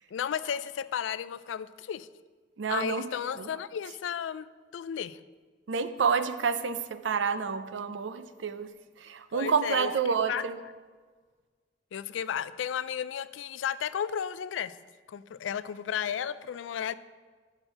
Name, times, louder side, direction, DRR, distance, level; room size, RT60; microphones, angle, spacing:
voice 1, 0.1-2.1 2.7-4.5 4.7-5.2 9.3-9.9 10.3-10.5 11.9-14.7 15.1-16.9, left 8 dB, 90° left, 16 dB, 0.3 m, -33 dB
voice 2, 2.6-3.1 3.4-3.5 5.7-8.7 9.0-10.6, right 6 dB, 75° right, 11 dB, 0.5 m, -29 dB
6.4 x 6.2 x 6.3 m, 1.5 s
head